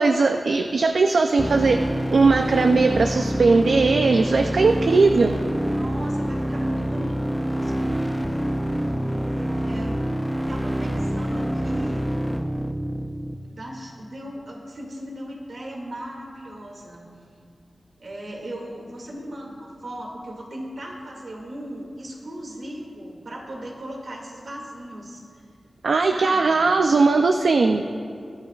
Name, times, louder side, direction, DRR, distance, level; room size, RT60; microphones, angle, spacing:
voice 1, 0.0-1.8 2.1-5.4 25.8-27.9, right 3 dB, 80° right, 5 dB, 0.5 m, -19 dB
sound 1, 1.4-13.4, equal, ahead, 0.5 m, -26 dB
voice 2, 5.6-8.0 9.1-10.0 10.5-12.1 13.5-17.0 18.0-25.2 26.1-26.7, right 1 dB, 65° right, -1 dB, 2.3 m, -37 dB
22.0 x 11.5 x 2.4 m, 2.3 s
wide cardioid pair, 85°, 0 cm